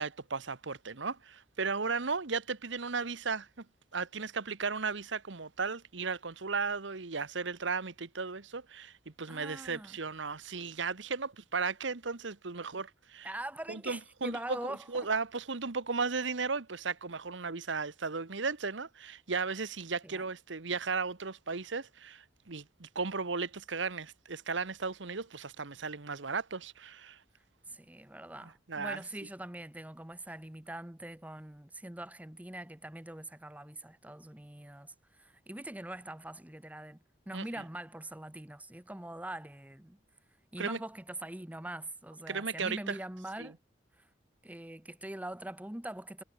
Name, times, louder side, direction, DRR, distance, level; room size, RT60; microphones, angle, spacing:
voice 1, 0.0-3.6 3.9-13.3 13.7-14.6 14.9-27.2 28.7-29.0 37.3-37.4 40.6-40.8 42.3-43.0 43.4-43.5, right 4 dB, 70° right, 1.2 m, -35 dB
voice 2, 9.3-10.0 13.2-15.1 20.0-20.2 27.7-37.0 37.3-40.0 40.5-43.6 44.0-44.1 44.4-46.2, right 1 dB, 10° right, 0.9 m, -43 dB
head